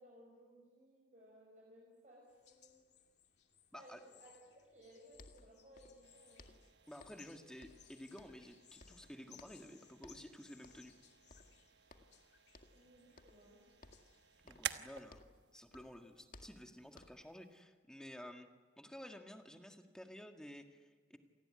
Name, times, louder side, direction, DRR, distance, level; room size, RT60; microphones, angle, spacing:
voice 1, 0.0-2.8 3.7-4.3 4.7-6.5 12.7-13.7, equal, 40° right, -2 dB, 6.0 m, -61 dB
sound 1, 2.3-14.5, left 10 dB, 65° left, 2.7 m, -66 dB
voice 2, 3.7-4.0 6.9-10.9 14.4-18.5 18.8-21.2, equal, 5° left, 4 dB, 1.8 m, -53 dB
sound 2, 5.1-6.1 6.4-7.3 7.6-8.5 8.8-9.7 10.0-10.3 10.6-11.0 11.3-12.2 12.5-12.9 13.2-13.5 13.8-15.5 15.7-17.3, left 2 dB, 50° left, 2.0 m, -61 dB
sound 3, 6.0-17.6, right 9 dB, 65° right, 1.2 m, -53 dB
27.5 x 19.5 x 9.8 m, 1.4 s
head